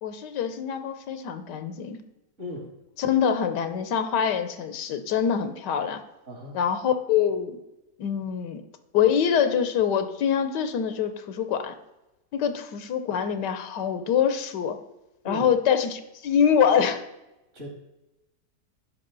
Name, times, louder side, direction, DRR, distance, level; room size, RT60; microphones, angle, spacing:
voice 1, 0.0-2.0 3.0-6.0 6.5-7.6 8.0-8.6 8.9-11.7 12.3-14.8 15.2-17.0, left 8 dB, 80° left, 10 dB, 1.4 m, -25 dB
voice 2, 2.4-2.7 6.3-6.6 15.2-15.5 17.5-17.7, left 2 dB, 45° right, 1 dB, 2.4 m, -36 dB
12.0 x 5.1 x 3.9 m, 0.94 s
omnidirectional pair, 1.8 m